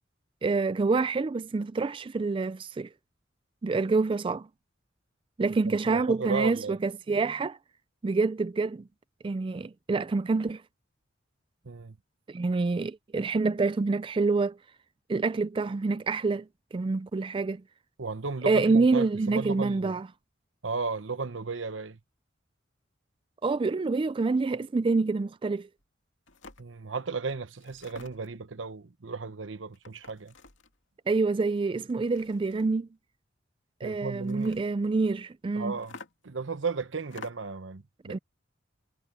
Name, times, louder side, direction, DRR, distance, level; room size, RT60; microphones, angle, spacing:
voice 1, 0.4-2.9 3.6-4.5 5.4-7.6 8.0-8.8 9.2-10.6 12.3-14.6 15.1-16.5 16.7-17.6 18.5-20.1 23.4-25.7 31.1-32.9 33.8-35.8 38.1-38.2, right 3 dB, 25° right, 0.3 m, -27 dB
voice 2, 5.7-6.8 11.6-12.0 18.0-20.0 20.6-22.0 26.6-30.3 33.8-34.5 35.5-36.0 36.2-38.2, right 4 dB, 85° right, 1.0 m, -34 dB
sound 1, 25.8-25.9 26.3-26.7 27.6-28.4 29.7-30.8 31.8-32.8 34.2-34.7 35.8-36.4 37.0-37.6, left 4 dB, 90° left, 2.5 m, -49 dB
head